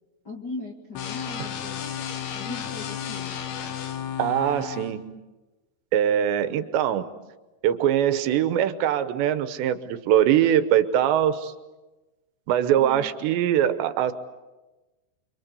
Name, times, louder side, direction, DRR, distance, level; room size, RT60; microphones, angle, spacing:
voice 1, 0.2-2.0 2.3-3.4 12.7-13.2, left 3 dB, 40° left, -2 dB, 1.6 m, -39 dB
sound 1, 1.0-4.9, left 9 dB, 75° left, 4.1 m, -33 dB
voice 2, 4.2-5.1 5.9-7.1 7.6-11.5 12.5-14.1, right 10 dB, 75° right, 11 dB, 3.1 m, -22 dB
29.5 x 24.0 x 8.3 m, 1.1 s
omnidirectional pair, 5.2 m